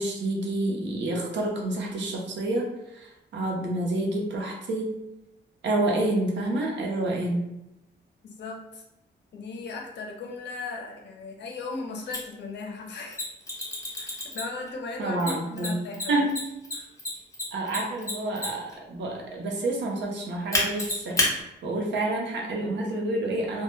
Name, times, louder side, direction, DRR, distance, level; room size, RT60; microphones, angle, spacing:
voice 1, 0.0-5.0 5.6-7.4 15.0-15.8 16.1-16.3 17.5-23.6, right 2 dB, 70° right, 0 dB, 0.6 m, -28 dB
voice 2, 8.2-8.8 9.3-13.3 13.9-16.3 16.7-16.9, left 3 dB, 70° left, 1 dB, 0.5 m, -37 dB
Mechanisms, 12.1-12.2 13.1-14.7 15.2-18.7 20.5-21.3, left 2 dB, 15° left, 0.7 m, -28 dB
2.1 x 2.1 x 3.0 m, 0.89 s
cardioid pair, 110°, 19 cm